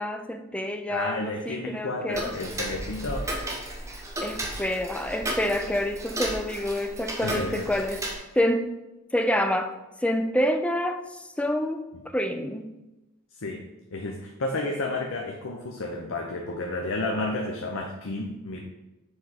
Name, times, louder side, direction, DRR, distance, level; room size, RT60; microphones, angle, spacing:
voice 1, 0.0-2.3 4.2-8.0 8.3-8.7 9.1-9.7 10.0-11.9 12.1-12.7, equal, 5° left, 7 dB, 0.4 m, -27 dB
voice 2, 0.9-3.3 7.2-7.7 13.3-13.6 13.9-18.6, left 2 dB, 65° left, 1 dB, 0.7 m, -31 dB
Tick-tock, 2.1-8.1, right 1 dB, 15° right, 0.9 m, -34 dB
6.9 x 4.9 x 4.1 m, 1.0 s
head